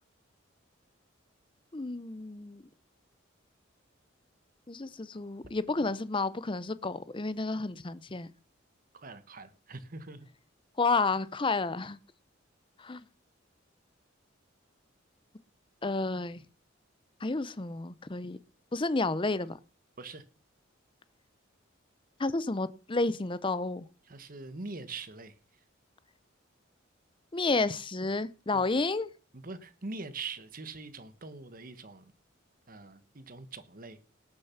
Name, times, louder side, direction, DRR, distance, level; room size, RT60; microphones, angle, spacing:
voice 1, 1.7-2.6 4.7-8.3 10.8-12.0 12.8-13.0 15.8-16.4 17.2-18.4 18.7-19.6 22.2-23.9 27.3-29.1, left 3 dB, 25° left, 0.7 m, -31 dB
voice 2, 8.9-10.3 20.0-20.2 24.1-25.3 28.5-28.6 29.4-32.1 32.7-34.0, right 3 dB, 45° right, 1.2 m, -43 dB
18.0 x 6.8 x 5.7 m
head